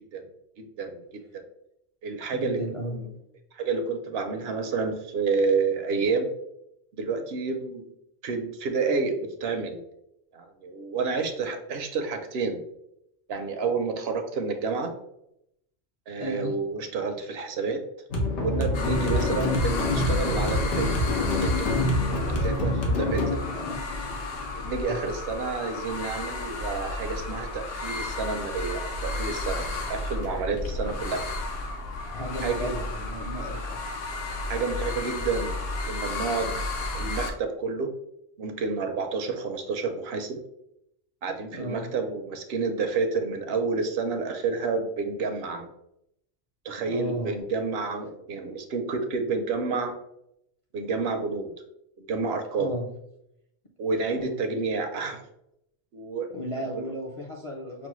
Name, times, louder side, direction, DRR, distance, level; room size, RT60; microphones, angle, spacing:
voice 1, 0.6-1.4 2.0-3.1 3.5-6.3 7.0-7.8 8.2-9.8 10.3-12.6 13.3-14.9 16.1-17.8 18.4-21.1 21.4-23.4 24.5-31.2 32.4-32.7 34.5-36.6 36.9-37.9 38.4-40.4 41.2-45.7 46.6-49.9 50.7-51.5 52.0-52.7 53.8-55.3 55.9-56.3 56.7-56.9, right 4 dB, 70° right, 6 dB, 0.8 m, -29 dB
voice 2, 2.3-3.0 16.2-16.5 23.5-24.0 24.9-25.0 32.1-33.8 41.5-41.9 46.9-47.4 52.6-52.9 54.1-54.3 56.3-57.9, equal, 40° left, -2 dB, 0.5 m, -34 dB
sound 1, 18.1-25.1, left 1 dB, 90° left, 1.2 m, -26 dB
sound 2, 18.7-37.3, left 2 dB, 65° left, 0.8 m, -33 dB
5.9 x 2.1 x 3.0 m, 0.79 s
omnidirectional pair, 1.1 m